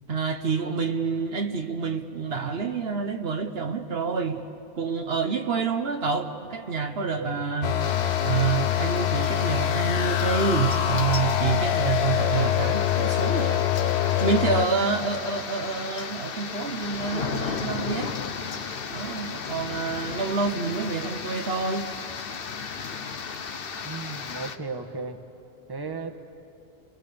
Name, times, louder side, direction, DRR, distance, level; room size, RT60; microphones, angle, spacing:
voice 1, 0.1-4.4 4.7-7.7 8.2-13.7 14.2-18.2 18.9-21.9, right 5 dB, 70° right, 6 dB, 1.2 m, -28 dB
sound 1, 7.6-14.7, left 10 dB, 80° left, 1.0 m, -24 dB
sound 2, 7.8-24.6, left 6 dB, 60° left, 1.1 m, -35 dB
voice 2, 23.8-25.2 25.7-26.1, right 4 dB, 20° right, 7 dB, 1.2 m, -35 dB
29.5 x 22.5 x 6.9 m, 2.7 s
omnidirectional pair, 1.1 m